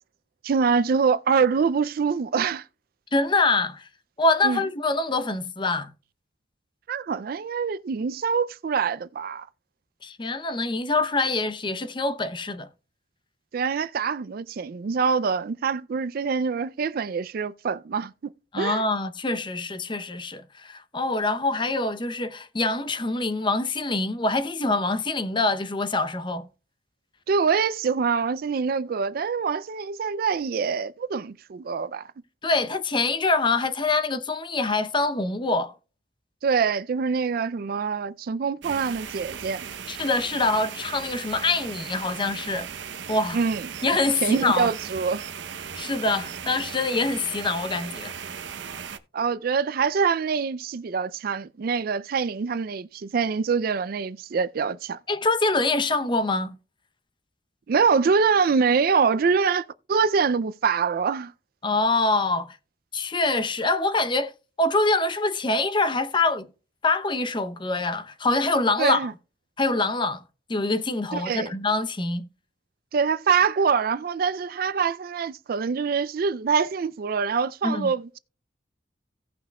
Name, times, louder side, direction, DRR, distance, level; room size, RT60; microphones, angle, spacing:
voice 1, 0.4-2.6 4.4-4.6 6.9-9.4 13.5-18.1 18.6-18.8 27.3-32.0 36.4-39.6 43.3-43.7 44.2-45.2 49.1-55.0 57.7-61.3 68.8-69.1 71.1-71.5 72.9-78.2, right 5 dB, 55° right, 0.4 m, -24 dB
voice 2, 3.1-3.9 4.2-5.9 10.0-12.7 18.5-26.5 32.4-35.7 39.9-42.7 43.1-43.4 43.8-44.7 45.8-48.1 55.1-56.6 61.6-62.6 62.9-66.5 66.8-69.0 69.6-70.2 70.5-72.3 77.6-77.9, left 3 dB, 25° left, 0.7 m, -25 dB
sound 1, 38.6-49.0, right 7 dB, 80° right, 0.8 m, -37 dB
17.0 x 5.8 x 2.2 m
head